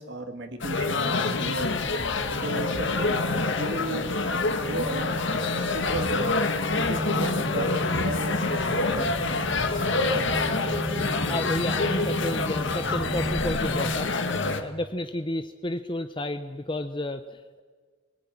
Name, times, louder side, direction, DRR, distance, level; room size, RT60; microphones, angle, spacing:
voice 1, 0.0-1.8 2.4-3.2 3.6-5.1 5.6-6.3 6.7-9.5 10.3-10.8, right 1 dB, 55° right, 6 dB, 2.1 m, -35 dB
sound 1, 0.6-14.6, left 3 dB, 55° left, 1.9 m, -27 dB
sound 2, 3.4-14.0, right 1 dB, 10° right, 0.8 m, -35 dB
voice 2, 10.5-14.1 14.4-17.6, left 1 dB, 25° left, 9 dB, 0.8 m, -32 dB
23.5 x 19.5 x 9.9 m, 1.6 s
head